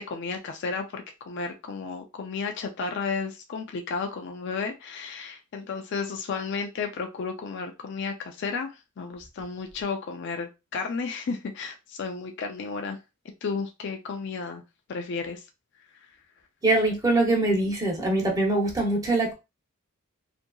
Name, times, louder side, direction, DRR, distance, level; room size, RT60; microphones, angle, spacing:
voice 1, 0.0-8.7 9.0-13.0 13.4-14.6 14.9-15.4, left 4 dB, 55° left, 0.3 m, -33 dB
voice 2, 16.6-19.3, right 2 dB, 15° right, 0.6 m, -23 dB
2.7 x 2.5 x 2.2 m
head